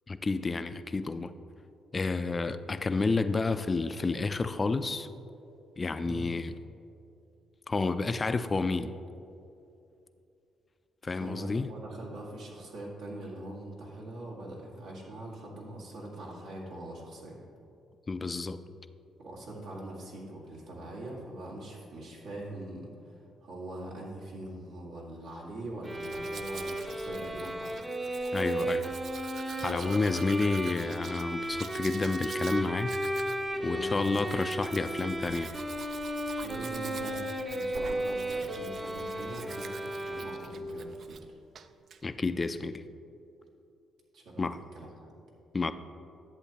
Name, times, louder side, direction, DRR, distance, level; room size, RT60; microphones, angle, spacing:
voice 1, 0.1-1.3 1.9-5.1 5.8-6.5 7.7-8.9 11.0-11.7 18.1-18.6 28.3-28.9 29.6-33.0 33.6-35.5 42.0-42.8 44.4-44.6 45.5-45.7, left 3 dB, 30° left, 11 dB, 0.3 m, -30 dB
voice 2, 6.0-6.3 11.2-17.4 19.2-27.7 29.8-30.3 33.6-35.1 36.4-37.3 37.5-41.2 44.1-44.4 44.7-45.1, right 1 dB, 80° right, -4 dB, 1.9 m, -43 dB
sound 1, 25.8-40.8, right 1 dB, 20° right, 0.7 m, -35 dB
Domestic sounds home sounds, 25.8-41.3 41.5-42.0, right 6 dB, 60° right, 0.3 m, -48 dB
11.0 x 7.6 x 2.9 m, 2.7 s
cardioid pair, 90°, 0 cm